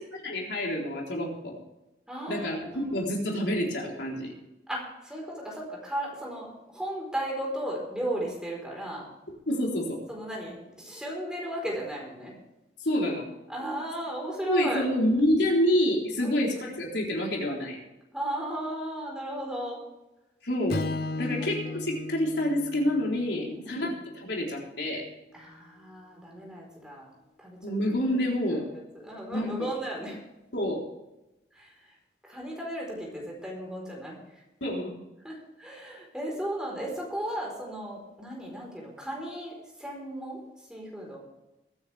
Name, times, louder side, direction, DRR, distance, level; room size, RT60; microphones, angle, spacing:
voice 1, 0.1-1.6 2.3-2.6 2.8-4.3 9.5-10.0 12.8-13.2 14.5-17.8 20.4-20.8 21.2-23.9 24.2-25.1 27.6-28.7 29.3-29.7 30.5-30.8 34.6-34.9, left 1 dB, 80° left, -2 dB, 4.0 m, -27 dB
voice 2, 2.1-3.1 4.7-9.1 10.1-12.3 13.5-14.8 16.2-16.8 18.1-19.8 21.2-21.8 23.3-23.9 25.3-27.1 27.4-27.8 28.6-28.7 28.9-30.2 31.5-32.0 32.2-34.4 35.2-41.2, right 1 dB, 5° right, -2 dB, 4.5 m, -36 dB
Strum, 20.7-25.0, left 3 dB, 60° left, 0.6 m, -36 dB
22.0 x 9.9 x 3.5 m, 0.96 s
head